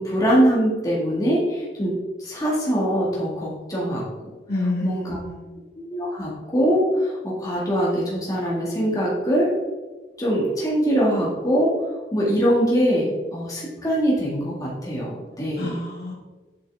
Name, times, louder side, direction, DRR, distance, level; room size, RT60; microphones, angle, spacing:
voice 1, 0.0-4.0 4.8-5.2 5.8-9.5 10.2-11.7 12.1-15.7, equal, 20° left, -5 dB, 2.0 m, -22 dB
voice 2, 4.5-5.5 15.6-16.1, left 2 dB, 65° left, -4 dB, 2.3 m, -28 dB
7.7 x 6.2 x 3.6 m, 1.3 s
head